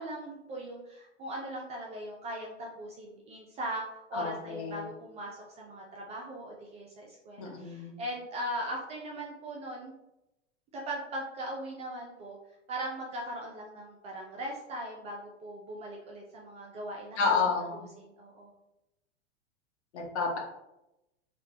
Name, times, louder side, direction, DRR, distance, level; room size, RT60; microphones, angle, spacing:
voice 1, 0.0-9.9 10.7-12.4 12.7-17.4 17.7-18.5, right 1 dB, 20° right, -2 dB, 0.3 m, -39 dB
voice 2, 4.1-4.9 7.4-8.0 17.2-17.8 19.9-20.4, left 4 dB, 65° left, 0 dB, 0.9 m, -30 dB
3.1 x 2.2 x 2.7 m, 0.89 s
figure-of-eight pair, 90°, 36 cm